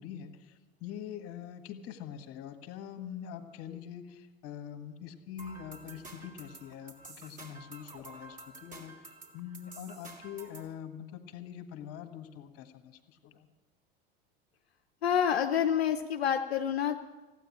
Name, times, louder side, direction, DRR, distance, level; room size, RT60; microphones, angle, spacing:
voice 1, 0.0-13.5, left 9 dB, 50° left, 8 dB, 1.7 m, -44 dB
sound 1, 5.4-10.7, right 3 dB, 25° right, 3.3 m, -50 dB
voice 2, 15.0-17.0, left 8 dB, 75° left, 6 dB, 0.8 m, -28 dB
15.0 x 9.2 x 9.8 m, 1.2 s
figure-of-eight pair, 75°, 31 cm